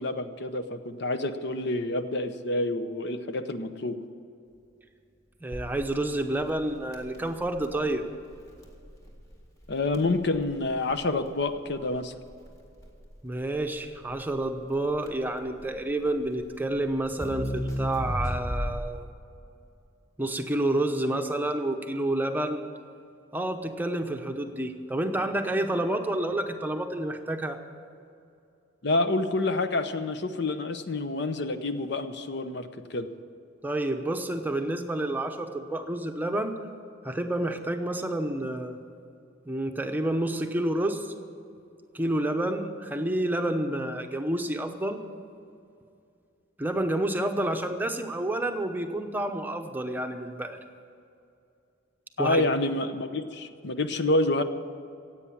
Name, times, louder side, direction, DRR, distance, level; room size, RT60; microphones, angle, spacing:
voice 1, 0.0-4.0 9.7-12.1 28.8-33.1 52.2-54.4, left 2 dB, 60° left, 9 dB, 0.8 m, -28 dB
voice 2, 5.4-8.0 13.2-19.0 20.2-22.6 23.3-27.6 33.6-36.5 37.0-38.8 39.4-41.1 41.9-45.0 46.6-50.6 52.2-52.5, right 1 dB, 10° right, 5 dB, 0.8 m, -29 dB
Crackle, 5.5-19.1, equal, 15° left, 1.9 m, -36 dB
16.0 x 8.5 x 8.6 m, 2.6 s
head